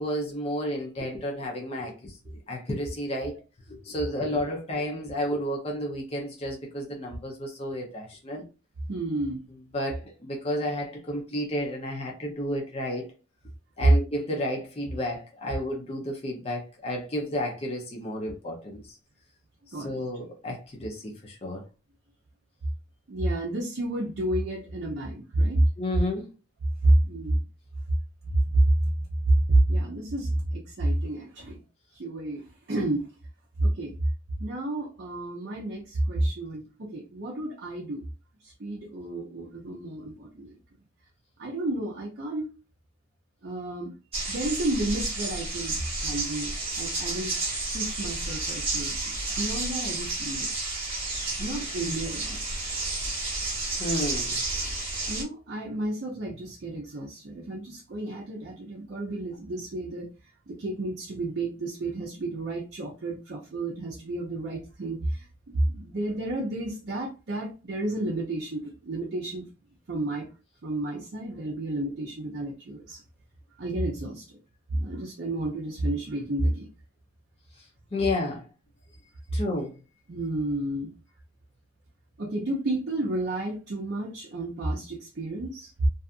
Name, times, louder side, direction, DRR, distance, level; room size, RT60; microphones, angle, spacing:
voice 1, 0.0-2.2 2.5-3.4 3.7-8.4 9.7-13.1 13.8-18.8 19.7-21.6 25.8-26.3 51.8-51.9 53.8-54.4 77.9-78.4 79.3-79.7, left 1 dB, 30° left, 0.6 m, -31 dB
voice 2, 8.9-9.5 19.7-20.0 23.1-25.6 26.8-27.4 28.3-28.9 29.3-31.6 31.9-33.1 33.6-33.9 34.4-38.0 38.4-40.6 41.4-42.5 43.4-43.9 44.3-47.4 47.7-50.5 51.4-52.4 55.1-60.1 60.5-69.5 69.9-70.3 70.6-73.0 73.6-74.4 74.7-76.7 80.1-80.9 82.2-85.9, right 1 dB, 50° right, 0.5 m, -30 dB
sound 1, 44.1-55.2, right 2 dB, 25° right, 0.9 m, -31 dB
2.7 x 2.4 x 2.4 m
head